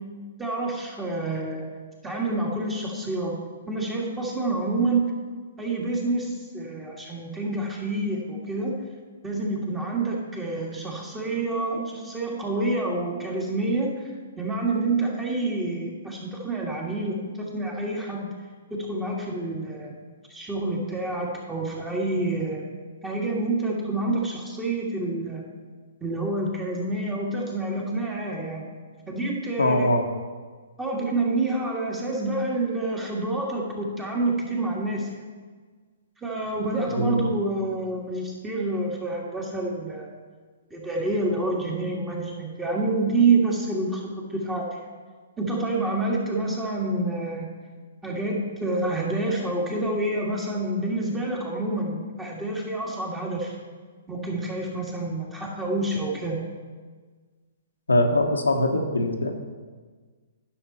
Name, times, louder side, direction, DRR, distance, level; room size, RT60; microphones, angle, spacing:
voice 1, 0.4-1.7 2.0-3.4 3.7-5.1 5.6-8.8 9.2-18.3 18.7-19.9 20.3-22.6 23.0-25.4 26.0-28.7 29.1-29.9 30.8-35.1 36.2-40.1 40.7-44.7 45.4-47.5 48.0-53.6 54.1-56.4, right 2 dB, 10° right, -2 dB, 1.9 m, -28 dB
voice 2, 29.6-30.0 36.9-37.2 57.9-59.3, left 1 dB, 90° left, 3 dB, 1.1 m, -22 dB
10.0 x 6.4 x 4.3 m, 1.5 s
hypercardioid pair, 125°, 0 cm